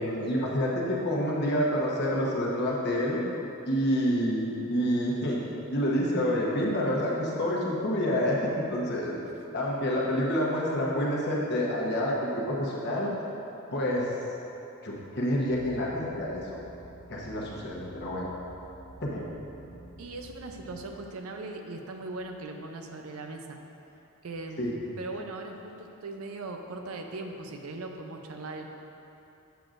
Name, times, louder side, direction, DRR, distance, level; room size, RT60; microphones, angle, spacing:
voice 1, 0.0-3.2 3.7-5.4 5.7-9.2 9.5-13.1 13.7-14.1 14.8-16.6 17.1-18.3 19.0-19.2 24.6-24.7, equal, 50° left, -4 dB, 1.1 m, -28 dB
sound 1, 15.4-20.9, right 1 dB, 85° left, 1.0 m, -49 dB
voice 2, 20.0-23.6 24.2-28.7, right 2 dB, 80° right, 4 dB, 0.6 m, -39 dB
7.6 x 6.9 x 2.5 m, 3.0 s
head